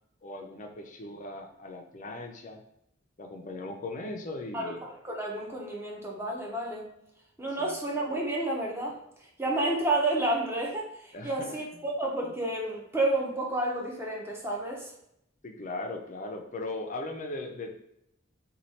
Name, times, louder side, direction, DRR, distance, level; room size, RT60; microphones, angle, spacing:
voice 1, 0.2-2.6 3.2-4.8 7.6-7.7 11.1-11.6 15.4-17.8, left 2 dB, 40° left, 3 dB, 0.5 m, -38 dB
voice 2, 4.5-6.9 7.4-9.0 9.4-14.9, right 2 dB, 10° right, -2 dB, 0.7 m, -30 dB
3.1 x 2.3 x 4.1 m, 0.76 s
head